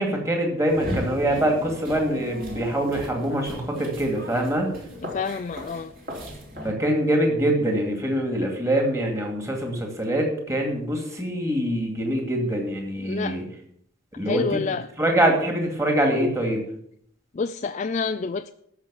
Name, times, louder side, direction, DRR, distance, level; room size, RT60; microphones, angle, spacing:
voice 1, 0.0-4.7 6.6-13.4 14.2-14.6 15.0-16.6, right 1 dB, 15° right, 2.4 m, -24 dB
sound 1, 0.7-6.7, left 1 dB, 45° right, 3.4 m, -36 dB
voice 2, 5.0-5.9 13.0-13.4 14.3-14.9 17.3-18.5, left 5 dB, 35° left, 0.4 m, -28 dB
14.0 x 6.1 x 7.1 m
head